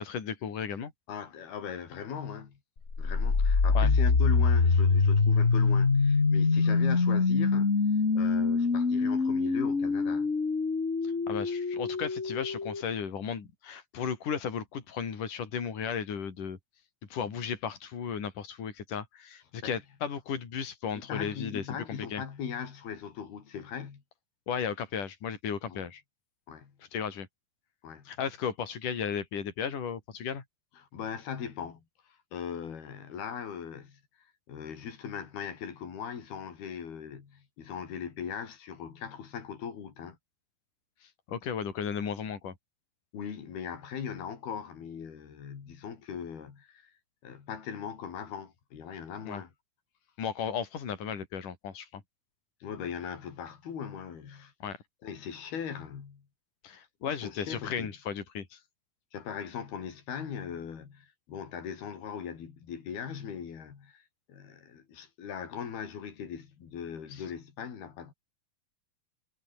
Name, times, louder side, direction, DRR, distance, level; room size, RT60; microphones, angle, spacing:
voice 1, 0.0-0.9 3.8-3.9 11.0-16.6 17.1-22.2 24.5-26.0 26.9-27.3 28.1-30.4 41.3-42.6 49.3-49.4 50.2-52.0 54.6-54.8 56.6-58.6 67.1-67.2, left 7 dB, 55° left, 5.2 m, -35 dB
voice 2, 1.1-2.6 3.0-7.8 8.2-10.3 19.6-19.8 20.9-24.0 25.7-25.8 26.5-26.7 27.8-28.1 30.8-40.2 43.1-46.9 47.2-49.5 52.6-54.5 55.0-56.3 57.1-57.9 59.1-68.1, left 7 dB, 80° left, 5.7 m, -39 dB
sound 1, 2.9-12.8, left 4 dB, 25° left, 1.6 m, -25 dB
omnidirectional pair, 4.4 m